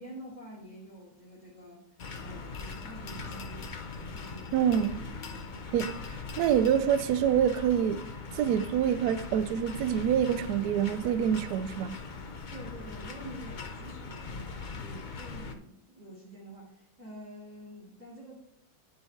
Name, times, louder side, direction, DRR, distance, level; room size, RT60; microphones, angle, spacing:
voice 1, 0.0-1.8 2.1-3.7 4.1-4.6 5.3-6.5 12.5-18.4, right 1 dB, 10° right, 2.2 m, -48 dB
sound 1, 2.0-15.5, left 4 dB, 60° left, 0.4 m, -41 dB
voice 2, 4.5-5.1 5.7-8.1 8.3-11.9, right 9 dB, 70° right, 1.0 m, -26 dB
9.8 x 5.5 x 4.6 m
omnidirectional pair, 2.0 m